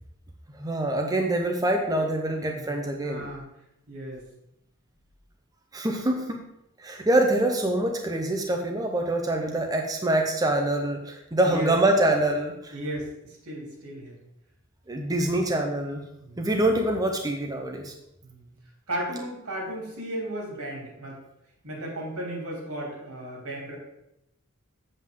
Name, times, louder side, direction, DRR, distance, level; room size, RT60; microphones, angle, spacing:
voice 1, 0.6-3.3 5.7-6.4 6.8-12.7 14.9-16.0 16.4-17.9, right 1 dB, 15° right, 2 dB, 0.7 m, -25 dB
voice 2, 2.3-3.4 3.9-4.2 11.4-11.7 12.7-14.1 16.2-16.5 18.2-18.4 18.9-21.2 21.6-23.8, right 1 dB, 85° right, -2 dB, 3.4 m, -35 dB
7.8 x 7.7 x 3.7 m, 0.82 s
head